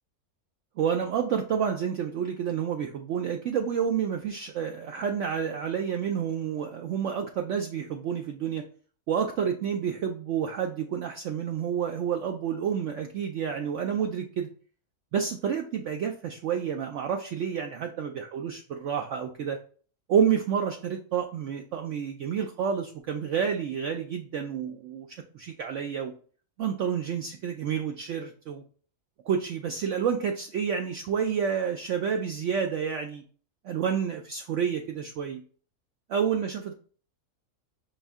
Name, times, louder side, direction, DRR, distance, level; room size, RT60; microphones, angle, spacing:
voice 1, 0.8-8.6 9.1-14.5 15.1-19.6 20.1-25.1 25.3-26.1 26.6-28.6 29.3-33.2 33.6-35.4 36.1-36.7, right 7 dB, 70° right, 3 dB, 0.8 m, -29 dB
5.4 x 2.6 x 3.5 m, 0.43 s
omnidirectional pair, 1.6 m